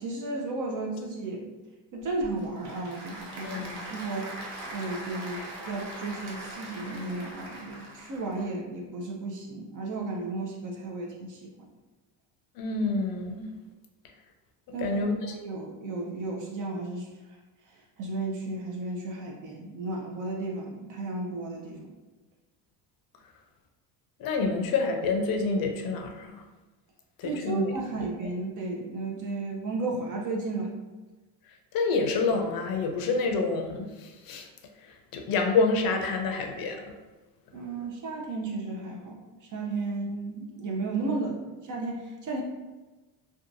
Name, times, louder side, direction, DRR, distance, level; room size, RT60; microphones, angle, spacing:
voice 1, 0.0-1.4 1.9-3.6 3.9-4.3 4.6-11.5 14.7-17.1 18.0-21.9 27.2-30.7 37.5-42.4, right 3 dB, 40° right, 0 dB, 0.6 m, -34 dB
Applause / Crowd, 2.0-8.5, right 1 dB, 85° right, 0.8 m, -41 dB
voice 2, 3.4-3.8 12.6-13.5 14.8-15.4 24.2-26.4 27.2-27.7 28.0-28.1 31.7-34.5 34.8-36.9, left 3 dB, 50° left, 4 dB, 0.6 m, -28 dB
2.7 x 2.3 x 2.5 m, 1.2 s
supercardioid pair, 105°, 47 cm